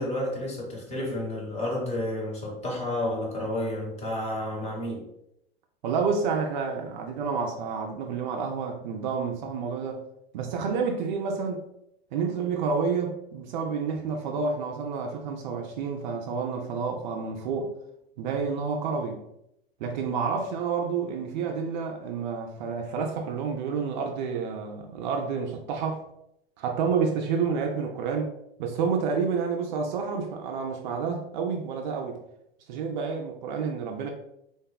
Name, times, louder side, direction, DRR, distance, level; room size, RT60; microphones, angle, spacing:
voice 1, 0.0-5.0, left 1 dB, 20° left, -2 dB, 0.8 m, -31 dB
voice 2, 5.8-10.0 10.3-11.6 12.1-17.7 18.2-19.2 19.8-26.0 26.6-28.3 28.6-32.2 32.7-34.1, right 5 dB, 50° right, 3 dB, 0.4 m, -29 dB
3.3 x 2.0 x 2.2 m, 0.80 s
figure-of-eight pair, 90°, 31 cm